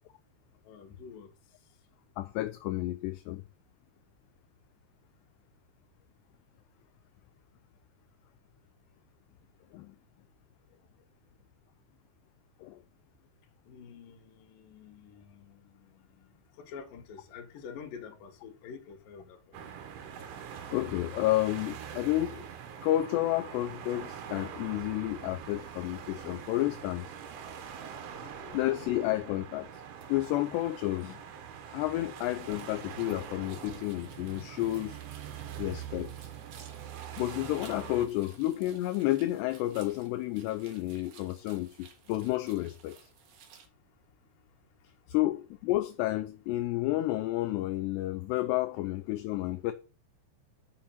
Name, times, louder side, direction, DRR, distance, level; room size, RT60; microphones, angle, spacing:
voice 1, 0.6-1.3 13.6-19.6 28.1-28.6 42.6-42.7 44.0-44.1 44.8-45.2, left 6 dB, 60° left, 2.8 m, -48 dB
voice 2, 2.2-3.4 9.7-10.0 12.6-12.8 20.7-22.5 22.8-27.1 28.5-29.7 30.1-31.2 31.7-35.0 35.6-36.3 37.2-43.0 45.1-49.7, left 16 dB, 85° left, 2.4 m, -31 dB
sound 1, 19.5-38.1, right 8 dB, 85° right, 3.7 m, -44 dB
sound 2, 32.2-43.7, right 7 dB, 65° right, 2.0 m, -57 dB
7.4 x 6.3 x 5.7 m
omnidirectional pair, 5.4 m